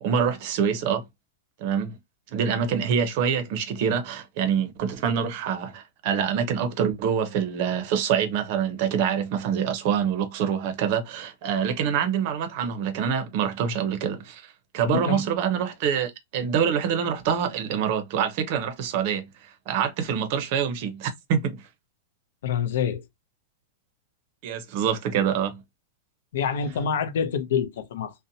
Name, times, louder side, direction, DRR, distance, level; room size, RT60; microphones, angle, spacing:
voice 1, 0.0-1.0 1.6-1.9 2.3-21.6 24.4-25.6, right 7 dB, 40° right, 0.6 m, -26 dB
voice 2, 14.9-15.2 22.4-23.0 26.3-28.1, left 7 dB, 65° left, 0.5 m, -26 dB
2.7 x 2.0 x 2.6 m
supercardioid pair, 170°, 0 cm